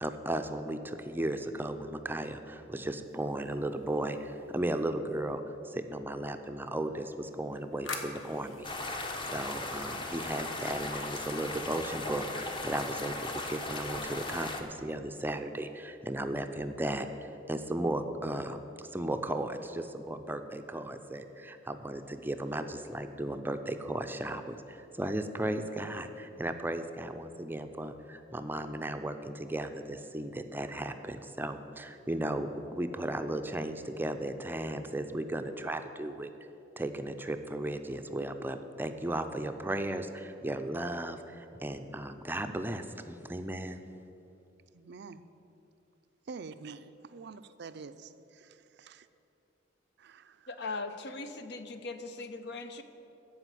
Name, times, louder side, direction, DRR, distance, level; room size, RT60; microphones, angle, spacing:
voice 1, 0.0-18.6 18.9-36.3 36.8-43.8, right 1 dB, 10° right, 7 dB, 0.5 m, -35 dB
sound 1, 3.1-4.8 7.1-10.4, left 4 dB, 85° left, 1.3 m, -46 dB
sound 2, 8.6-14.6, left 2 dB, 25° left, 0.9 m, -37 dB
voice 2, 44.7-45.3 46.3-46.8 47.1-49.1 50.0-50.5, right 4 dB, 60° right, 12 dB, 0.5 m, -47 dB
voice 3, 50.5-52.8, left 3 dB, 60° left, 8 dB, 0.8 m, -39 dB
14.5 x 5.0 x 9.1 m, 2.9 s
head